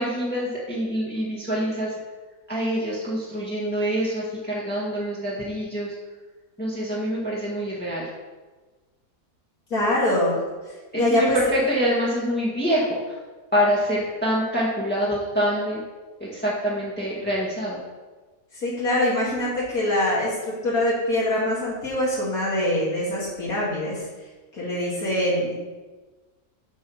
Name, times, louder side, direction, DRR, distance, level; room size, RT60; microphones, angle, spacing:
voice 1, 0.0-1.9 2.5-5.9 6.6-8.1 10.9-13.2 13.5-15.8 16.2-17.8, equal, 5° left, -7 dB, 1.6 m, -25 dB
voice 2, 9.7-10.4 10.7-11.4 18.5-24.0 24.5-25.5, left 1 dB, 65° left, -6 dB, 2.6 m, -24 dB
7.4 x 5.5 x 6.3 m, 1.3 s
omnidirectional pair, 1.7 m